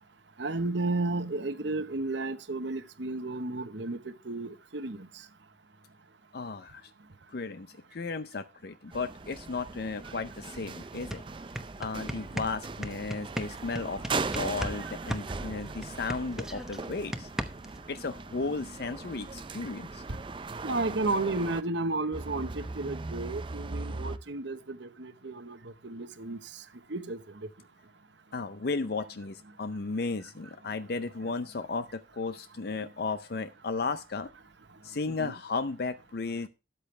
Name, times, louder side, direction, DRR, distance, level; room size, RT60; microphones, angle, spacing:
voice 1, 0.4-5.3 13.4-13.5 14.6-14.9 15.4-15.5 20.1-20.2 20.6-27.5 34.9-35.3, right 2 dB, 70° right, 1.0 m, -33 dB
voice 2, 6.3-6.9 7.3-11.2 11.8-17.3 17.9-20.0 28.3-34.3 34.8-36.5, left 4 dB, 55° left, 0.5 m, -34 dB
sound 1, 8.9-21.6 22.1-24.2, right 3 dB, 25° right, 0.5 m, -39 dB
sound 2, 10.6-10.7 10.9-14.8 15.1-17.8, equal, 5° right, 0.9 m, -36 dB
13.0 x 8.5 x 3.3 m
head